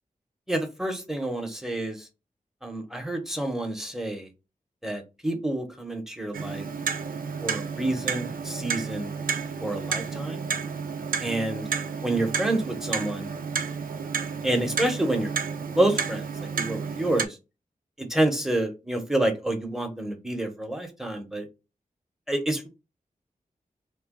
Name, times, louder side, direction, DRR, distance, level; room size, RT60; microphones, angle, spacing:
voice 1, 0.5-2.0 2.6-4.3 4.8-6.7 7.4-9.1 9.6-10.4 11.2-11.6 12.0-13.3 14.4-15.3 15.7-17.3 18.0-21.5 22.3-22.7, right 1 dB, 5° right, 4 dB, 0.9 m, -28 dB
Clock, 6.3-17.3, right 6 dB, 75° right, 0.4 m, -31 dB
3.0 x 2.2 x 3.6 m, 0.27 s
cardioid pair, 55°, 15 cm